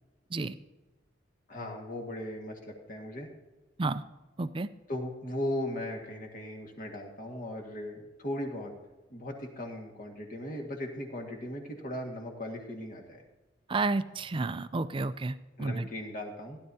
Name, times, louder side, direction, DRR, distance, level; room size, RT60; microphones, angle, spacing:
voice 1, 1.5-3.3 4.9-8.7 9.1-13.2 15.6-16.6, left 1 dB, 40° left, 2 dB, 1.8 m, -38 dB
voice 2, 4.4-4.7 13.7-15.9, right 3 dB, 25° right, 13 dB, 0.4 m, -31 dB
16.0 x 10.5 x 2.8 m, 1.1 s
head